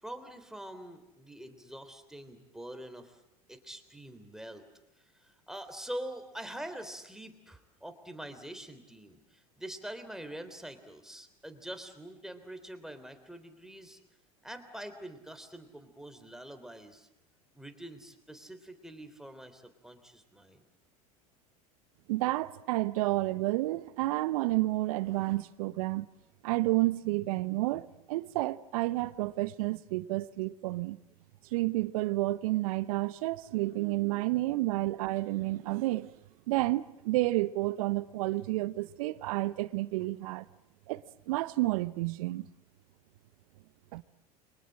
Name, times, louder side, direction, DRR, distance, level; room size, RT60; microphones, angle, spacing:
voice 1, 0.0-3.2 3.5-4.7 5.1-14.0 14.4-17.1 17.5-20.6, right 1 dB, ahead, 3.4 m, -45 dB
voice 2, 22.1-26.1 26.4-31.0 31.5-36.1 36.5-40.4 40.9-42.5 43.9-44.0, right 18 dB, 65° right, 0.9 m, -30 dB
29.5 x 23.5 x 7.6 m
hypercardioid pair, 80°, 19 cm